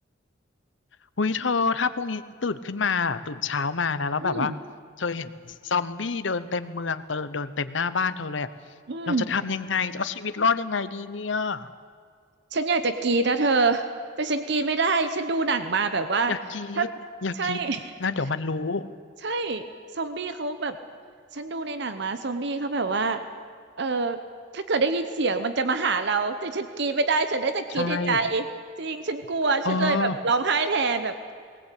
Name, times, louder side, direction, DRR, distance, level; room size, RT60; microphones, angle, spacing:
voice 1, 1.2-4.5 5.0-8.5 9.1-11.7 16.3-16.9 17.2-17.6 18.0-18.9 27.7-28.2 29.6-30.2, left 4 dB, 70° left, 13 dB, 0.9 m, -27 dB
voice 2, 4.2-4.6 8.9-9.3 12.5-13.8 14.2-16.3 16.8-16.9 17.3-17.9 19.2-19.6 19.9-20.8 21.3-23.2 23.8-24.2 24.5-28.4 28.8-31.1, right 3 dB, 60° right, 9 dB, 0.9 m, -25 dB
20.0 x 18.5 x 8.4 m, 2.1 s
head